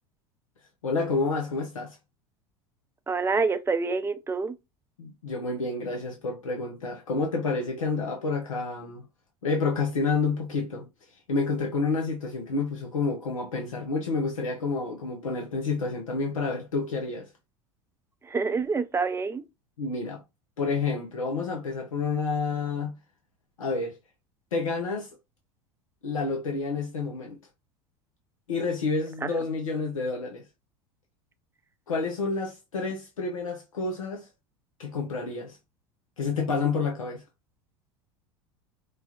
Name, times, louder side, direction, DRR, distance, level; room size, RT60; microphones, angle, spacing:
voice 1, 0.8-2.0 5.0-9.0 9.4-10.9 11.3-17.3 19.8-20.2 20.6-22.9 23.6-24.0 24.5-25.1 26.0-27.4 28.5-30.4 31.9-34.3 34.8-35.6 36.2-37.2, left 4 dB, 90° left, 0.7 m, -29 dB
voice 2, 3.1-4.5 18.2-19.4 29.2-29.3, right 4 dB, 15° right, 0.6 m, -27 dB
4.6 x 2.3 x 2.9 m
hypercardioid pair, 85°, 17 cm